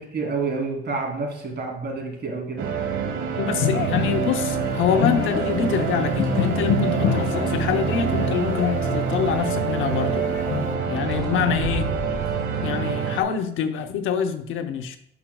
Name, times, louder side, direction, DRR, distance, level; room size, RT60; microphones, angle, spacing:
voice 1, 0.0-2.7 11.3-11.5, right 4 dB, 55° right, 1 dB, 2.9 m, -29 dB
sound 1, 2.6-13.2, right 6 dB, 80° right, 1.3 m, -26 dB
voice 2, 3.4-10.2 10.9-11.9 12.6-15.0, left 7 dB, 90° left, 7 dB, 0.9 m, -25 dB
sound 2, 3.6-10.8, left 11 dB, 60° left, 0.5 m, -28 dB
sound 3, 5.1-5.4 5.8-7.7 9.9-10.2 10.8-10.9 11.1-12.6, left 1 dB, 5° left, 3.0 m, -36 dB
12.0 x 5.6 x 2.3 m, 0.74 s
cardioid pair, 90°, 20 cm